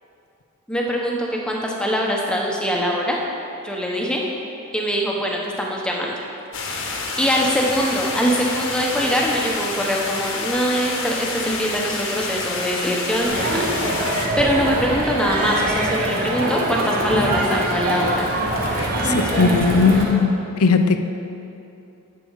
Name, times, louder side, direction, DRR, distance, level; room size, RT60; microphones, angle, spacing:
voice 1, 0.7-3.2 3.6-4.2 4.7-6.1 6.7-6.8 7.2-18.3 19.0-20.4, equal, 5° left, -2 dB, 1.0 m, -23 dB
sound 1, 6.5-14.3, left 3 dB, 65° left, 1.3 m, -28 dB
Crowd, 13.3-20.0, right 1 dB, 40° right, 1.4 m, -23 dB
voice 2, 18.8-21.0, left 4 dB, 85° left, 8 dB, 0.6 m, -18 dB
10.5 x 7.8 x 4.7 m, 2.7 s
head